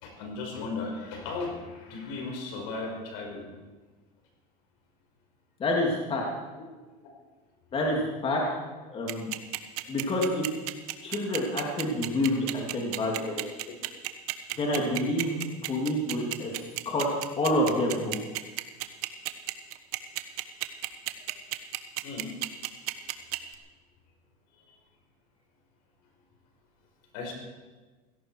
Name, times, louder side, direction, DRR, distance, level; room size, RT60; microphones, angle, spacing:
voice 1, 0.0-3.5 22.0-22.3 27.1-27.3, left 3 dB, 70° left, 2 dB, 5.3 m, -36 dB
voice 2, 5.6-6.2 7.7-8.4 8.9-9.3 9.9-10.4 11.0-13.4 14.5-15.3 15.7-16.5 16.8-17.1 17.4-18.2, left 1 dB, 30° left, -1 dB, 3.1 m, -28 dB
sound 1, 9.1-23.6, right 19 dB, 75° right, 1.2 m, -32 dB
17.0 x 16.5 x 4.9 m, 1.3 s
supercardioid pair, 120°, 19 cm